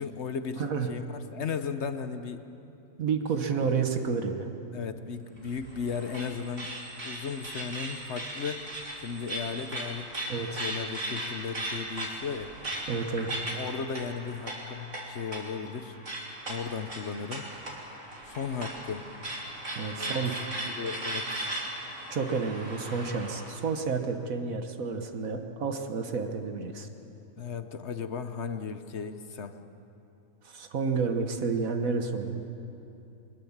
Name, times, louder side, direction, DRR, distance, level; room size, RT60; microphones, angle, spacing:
voice 1, 0.0-2.4 3.6-3.7 4.7-6.7 7.0-12.5 13.4-16.0 16.5-17.5 18.2-19.1 20.0-20.2 20.7-21.5 27.4-29.6, left 6 dB, 55° left, 10 dB, 1.1 m, -36 dB
voice 2, 0.6-0.9 3.0-4.5 10.3-10.6 12.9-13.3 19.7-20.4 22.1-26.9 30.4-32.4, right 5 dB, 80° right, 5 dB, 1.6 m, -30 dB
sound 1, 5.4-23.5, right 1 dB, 60° right, 3.6 m, -38 dB
22.0 x 20.5 x 7.3 m, 2.8 s
omnidirectional pair, 1.4 m